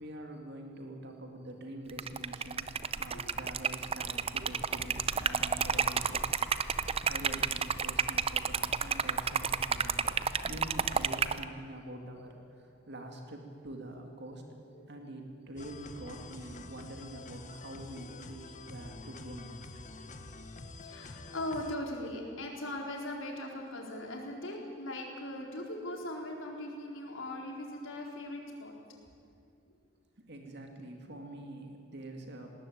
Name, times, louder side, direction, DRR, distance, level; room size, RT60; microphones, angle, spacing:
voice 1, 0.0-14.4 14.9-19.5 30.3-32.5, right 1 dB, 60° right, 3 dB, 2.4 m, -45 dB
Liquid, 1.9-11.4, right 6 dB, 30° right, 0.6 m, -31 dB
sound 1, 15.6-21.8, left 2 dB, 40° left, 1.2 m, -47 dB
voice 2, 20.8-28.7, left 1 dB, 90° left, 0 dB, 4.3 m, -39 dB
20.0 x 18.5 x 8.8 m, 2.3 s
head